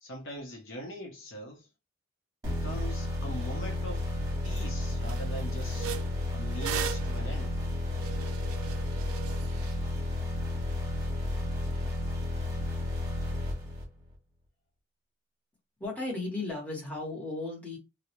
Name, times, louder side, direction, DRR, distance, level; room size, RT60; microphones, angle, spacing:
voice 1, 0.0-1.7 2.5-4.1 4.4-5.9 6.3-7.5, equal, 65° left, 0.7 m, -42 dB
sound 1, 2.4-14.1, left 2 dB, 15° right, 1.1 m, -32 dB
sound 2, 4.0-4.1 4.4-4.7 5.0-9.8, right 9 dB, 75° right, 0.3 m, -39 dB
voice 2, 15.8-17.8, left 2 dB, 5° left, 1.0 m, -35 dB
2.3 x 2.0 x 2.8 m
head